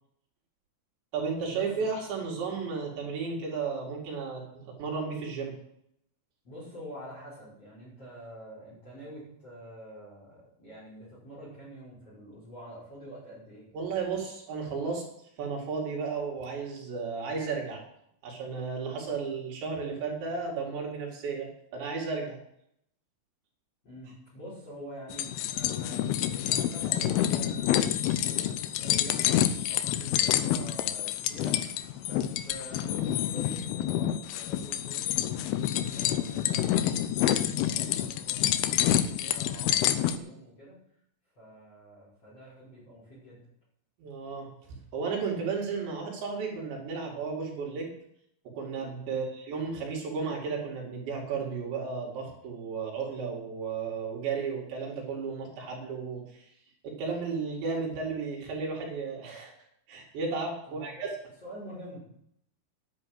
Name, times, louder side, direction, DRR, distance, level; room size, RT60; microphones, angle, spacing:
voice 1, 1.1-5.5 13.7-15.0 15.4-17.8 18.2-22.4 44.0-44.5 44.9-47.9 48.5-56.5 56.8-59.5 59.9-61.1, right 5 dB, 65° right, -2 dB, 4.5 m, -33 dB
voice 2, 6.4-13.7 23.8-29.4 29.7-31.6 32.0-35.2 35.9-37.1 37.5-40.8 41.4-43.4 49.0-49.3 60.7-61.1 61.4-62.0, equal, 30° left, -8 dB, 6.3 m, -46 dB
sound 1, 25.1-40.2, left 11 dB, 85° left, 2.2 m, -28 dB
10.5 x 9.0 x 7.8 m, 0.73 s
omnidirectional pair, 5.6 m